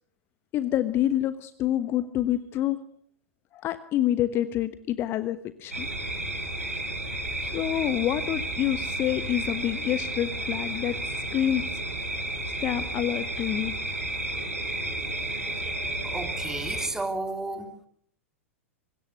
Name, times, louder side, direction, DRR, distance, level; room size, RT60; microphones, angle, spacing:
voice 1, 0.5-2.8 3.5-5.9 7.4-10.9 11.3-11.8 12.6-13.7, left 12 dB, 30° left, 12 dB, 1.2 m, -27 dB
sound 1, 5.7-16.9, right 1 dB, 80° right, 5.9 m, -32 dB
voice 2, 16.1-17.7, right 2 dB, 5° right, 6 dB, 3.0 m, -32 dB
25.0 x 20.5 x 6.6 m, 0.64 s
figure-of-eight pair, 95°, 7 cm